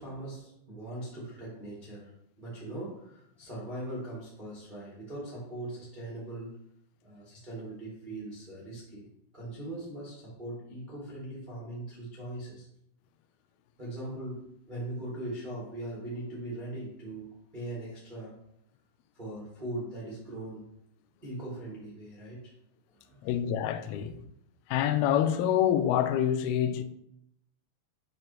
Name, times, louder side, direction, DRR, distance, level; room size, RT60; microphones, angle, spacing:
voice 1, 0.0-6.5 7.0-9.1 9.3-12.7 13.8-18.3 19.1-20.7 21.2-22.5 22.9-23.3 23.9-24.2, right 1 dB, 45° right, 0.6 m, -40 dB
voice 2, 23.2-24.1 24.7-26.8, left 10 dB, 85° left, 2.2 m, -26 dB
8.8 x 3.3 x 4.3 m
omnidirectional pair, 4.9 m